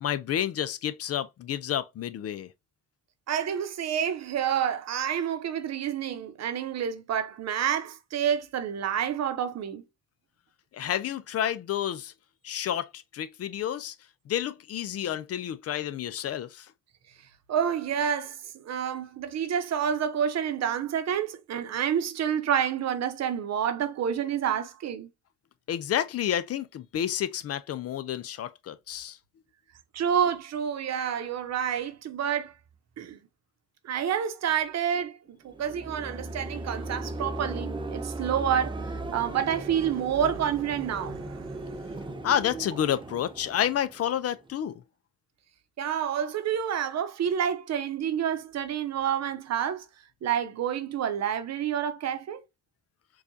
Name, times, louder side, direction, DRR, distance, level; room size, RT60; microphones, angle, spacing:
voice 1, 0.0-2.5 10.7-12.1 12.4-13.9 14.3-16.7 25.7-29.2 42.2-44.8, left 10 dB, 55° left, 0.5 m, -30 dB
voice 2, 3.3-9.8 17.5-25.1 29.9-32.5 33.0-33.2 33.8-42.1 45.8-49.9 50.2-52.4, right 8 dB, 60° right, 0.8 m, -29 dB
sound 1, 35.5-44.5, right 2 dB, 15° right, 0.6 m, -37 dB
4.7 x 2.4 x 2.6 m
cardioid pair, 90°, 30 cm